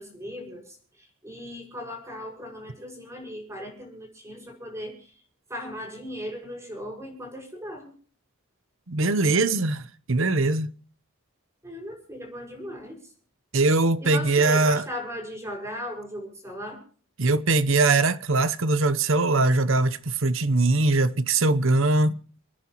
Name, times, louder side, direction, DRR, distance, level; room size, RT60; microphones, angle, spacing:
voice 1, 0.0-5.1 5.5-7.9 11.6-13.1 14.0-16.8, equal, 15° right, 6.1 m, -37 dB
voice 2, 8.9-10.7 13.5-14.8 17.2-22.2, right 2 dB, 65° right, 1.0 m, -21 dB
30.0 x 10.0 x 3.1 m
head